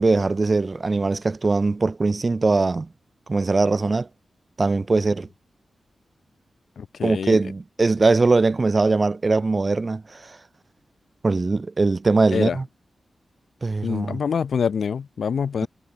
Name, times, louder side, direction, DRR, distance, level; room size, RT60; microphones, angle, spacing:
voice 1, 0.0-2.9 3.3-4.1 4.6-5.3 7.0-10.4 11.2-12.6 13.6-14.2, right 3 dB, 30° right, 2.9 m, -21 dB
voice 2, 6.8-7.4 12.3-12.6 13.8-15.7, left 6 dB, 75° left, 3.2 m, -25 dB
wide cardioid pair, 145°, 0 cm